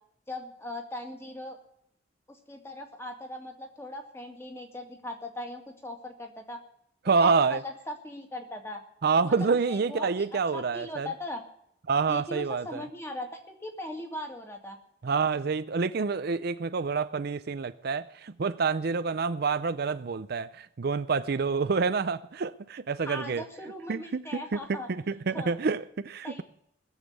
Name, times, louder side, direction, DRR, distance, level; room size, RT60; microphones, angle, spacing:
voice 1, 0.3-1.6 2.3-6.6 7.0-8.8 9.2-11.4 12.1-14.8 23.1-24.9 25.3-25.6 26.2-26.4, left 1 dB, 15° left, 2.0 m, -39 dB
voice 2, 7.0-7.6 9.0-11.1 11.9-12.9 15.0-23.4 23.9-24.6 24.9-26.4, right 4 dB, 50° right, 0.5 m, -27 dB
19.5 x 7.3 x 8.2 m
head